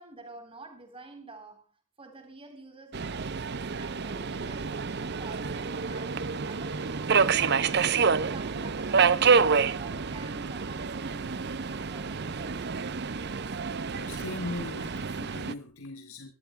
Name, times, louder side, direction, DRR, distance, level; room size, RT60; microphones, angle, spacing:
voice 1, 0.0-1.6 2.0-3.5 3.8-7.7 8.2-12.8, right 2 dB, 25° right, 3.5 m, -48 dB
Subway metro underground, 2.9-15.5, right 5 dB, 50° right, 0.6 m, -28 dB
voice 2, 13.9-16.3, left 2 dB, 70° left, 1.9 m, -39 dB
25.0 x 13.0 x 2.2 m
head